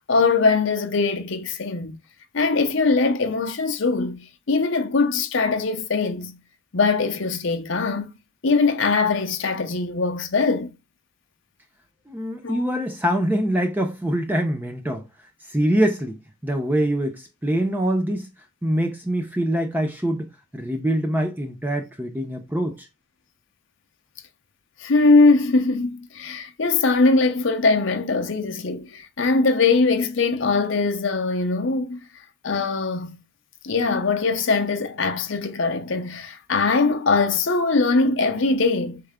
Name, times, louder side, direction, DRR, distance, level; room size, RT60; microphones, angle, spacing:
voice 1, 0.1-2.0 2.3-6.4 6.7-8.1 8.4-10.7 12.4-12.6 24.8-32.0 32.4-33.2 33.6-39.0, left 3 dB, 60° left, 0.6 m, -21 dB
voice 2, 12.1-15.0 15.5-18.3 18.6-20.3 20.5-22.9, right 1 dB, 10° right, 0.5 m, -24 dB
4.4 x 3.4 x 3.5 m
head